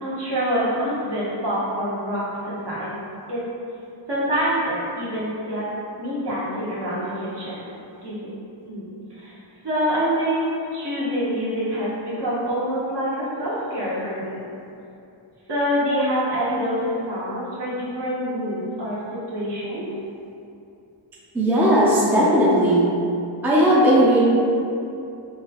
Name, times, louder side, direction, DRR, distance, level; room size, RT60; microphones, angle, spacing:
voice 1, 0.0-3.0 3.3-3.4 4.1-5.6 6.0-7.7 8.0-8.3 8.6-9.4 9.6-10.4 10.7-14.4 15.5-19.0 19.3-19.8, equal, 60° right, -9 dB, 0.9 m, -26 dB
voice 2, 21.3-22.8 23.4-24.2, equal, 5° right, -7 dB, 0.4 m, -17 dB
3.1 x 2.2 x 2.3 m, 2.7 s
cardioid pair, 60°, 47 cm